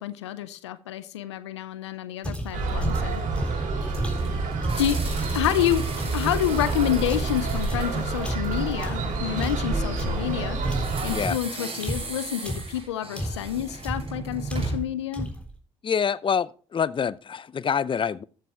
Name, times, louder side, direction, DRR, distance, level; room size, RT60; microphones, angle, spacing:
voice 1, 0.0-3.2 4.8-5.0 5.3-5.8 6.1-10.6 11.0-15.3, left 11 dB, 90° left, 0.6 m, -28 dB
sound 1, 2.2-5.5 6.0-10.3 10.6-12.8 13.2-13.6 13.8-14.2 14.5-14.9 15.1-15.5, right 1 dB, 10° left, 3.6 m, -33 dB
sound 2, 2.5-11.2, right 3 dB, 65° right, 3.3 m, -28 dB
sound 3, 3.6-9.0 10.7-15.0, right 3 dB, 40° right, 6.5 m, -38 dB
voice 2, 15.8-18.2, left 7 dB, 35° left, 0.6 m, -26 dB
14.0 x 7.5 x 3.5 m
hypercardioid pair, 45°, 14 cm